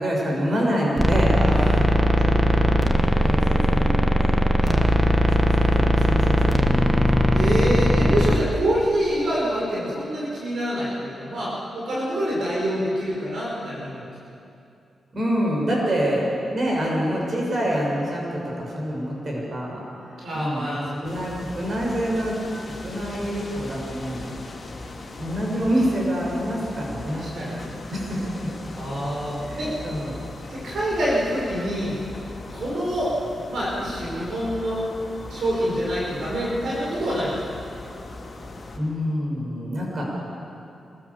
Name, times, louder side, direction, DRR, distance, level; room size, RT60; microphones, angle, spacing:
voice 1, 0.0-1.8 2.2-2.8 3.2-4.3 5.4-7.4 15.1-16.3 16.5-22.4 22.7-24.3 24.9-27.5 27.9-28.5 29.4-30.2 38.8-40.0, equal, 45° right, -3 dB, 7.6 m, -27 dB
sound 1, 1.0-8.4, equal, 15° right, 1.4 m, -19 dB
voice 2, 1.3-2.1 4.6-4.8 7.3-14.1 20.2-21.0 27.0-27.6 28.7-29.7 30.5-32.0 32.5-33.1 33.5-34.9 35.3-37.4, equal, 70° right, -6 dB, 6.0 m, -26 dB
sound 2, 21.0-38.8, left 2 dB, 35° left, 3.6 m, -39 dB
26.5 x 15.5 x 7.4 m, 2.6 s
cardioid pair, 90°, 0 cm